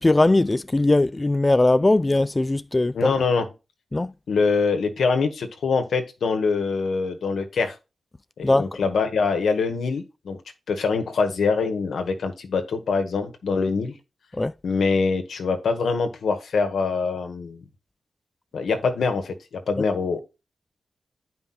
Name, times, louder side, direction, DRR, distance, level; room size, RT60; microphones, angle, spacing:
voice 1, 0.0-3.1 3.9-4.1 8.4-8.7 14.4-14.5 19.8-19.9, left 2 dB, 20° left, 0.4 m, -20 dB
voice 2, 2.9-3.5 4.3-7.8 8.4-10.4 10.7-13.9 14.6-17.6 18.5-20.2, left 4 dB, 85° left, 1.7 m, -24 dB
9.5 x 5.3 x 4.2 m
wide cardioid pair, 95°, 0 cm